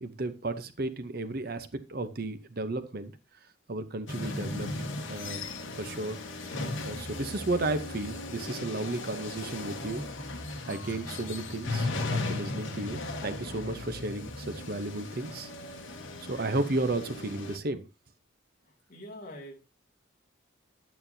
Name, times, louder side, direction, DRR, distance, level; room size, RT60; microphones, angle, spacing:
voice 1, 0.0-3.1 3.7-4.7 5.1-5.4 5.8-6.6 6.8-10.0 10.7-15.5 16.3-17.8, right 2 dB, 50° right, 10 dB, 0.8 m, -33 dB
sound 1, 4.1-17.6, left 2 dB, 70° left, 1.3 m, -37 dB
voice 2, 18.6-19.6, equal, 40° left, -1 dB, 2.5 m, -45 dB
10.5 x 9.0 x 2.7 m, 0.28 s
head